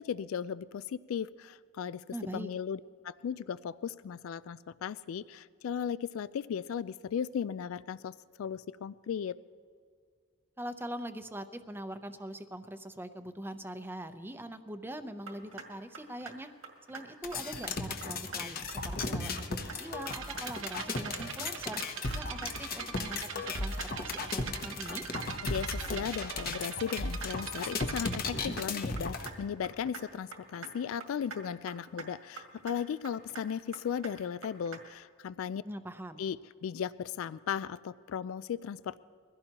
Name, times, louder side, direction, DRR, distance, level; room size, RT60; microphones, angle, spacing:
voice 1, 0.0-2.0 2.3-2.8 3.0-9.4 25.4-35.6 36.2-39.0, left 7 dB, 80° left, 17 dB, 0.3 m, -36 dB
voice 2, 2.1-2.5 10.6-16.5 16.9-21.8 22.1-25.0 35.6-36.2, right 1 dB, 10° right, 9 dB, 0.6 m, -42 dB
sound 1, 15.3-15.6 15.9-16.4 16.6-17.0 17.3-17.7 18.0-18.4 18.7-19.1 19.4-19.8 20.1-20.4 20.7-21.1 21.4-21.8 22.1-22.5 22.8-23.2 23.5-23.9 24.2-24.5 24.9-25.2 25.5-25.9 26.2-26.6 26.9-27.3 27.6-28.0 28.3-28.6 29.0-29.3 29.6-30.0 30.3-30.7 31.0-31.4 31.7-32.1 32.4-32.7 33.0-33.4 33.7-34.1 34.4-34.8, right 5 dB, 85° right, 2.1 m, -44 dB
sound 2, 17.2-29.3, left 3 dB, 45° left, 1.0 m, -36 dB
sound 3, 20.1-28.2, right 7 dB, 65° right, 0.9 m, -42 dB
22.5 x 16.0 x 2.9 m, 2.1 s
head